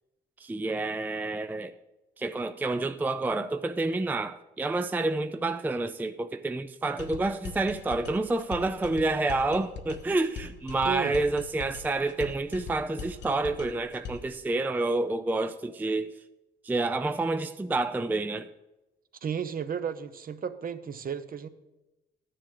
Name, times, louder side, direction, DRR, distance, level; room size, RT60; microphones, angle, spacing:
voice 1, 0.4-1.7 2.2-16.1 16.6-18.5, right 2 dB, 10° right, 0.4 m, -29 dB
sound 1, 7.0-14.4, left 5 dB, 65° left, 1.0 m, -42 dB
voice 2, 19.2-21.5, right 7 dB, 45° right, 0.8 m, -33 dB
13.5 x 10.0 x 3.8 m
cardioid pair, 90°, 20 cm